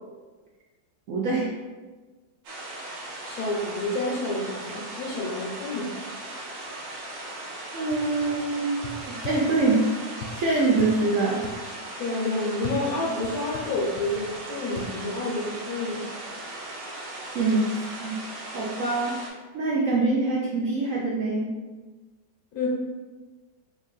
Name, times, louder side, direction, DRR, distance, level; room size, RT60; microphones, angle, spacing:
voice 1, 1.1-1.5 7.7-9.8 10.3-11.5 17.3-18.2 18.5-19.2 19.5-21.5, right 3 dB, 65° right, -4 dB, 0.8 m, -24 dB
sound 1, 2.4-19.3, right 1 dB, 85° right, 1.6 m, -38 dB
voice 2, 3.2-5.9 12.0-16.0 22.5-22.7, left 2 dB, 60° left, -3 dB, 1.1 m, -29 dB
sound 2, 7.9-8.4 8.8-9.8 10.2-10.9 11.4-11.6 12.6-14.4 14.8-14.9, left 4 dB, 85° left, 1.2 m, -39 dB
3.6 x 2.6 x 3.9 m, 1.3 s
omnidirectional pair, 1.9 m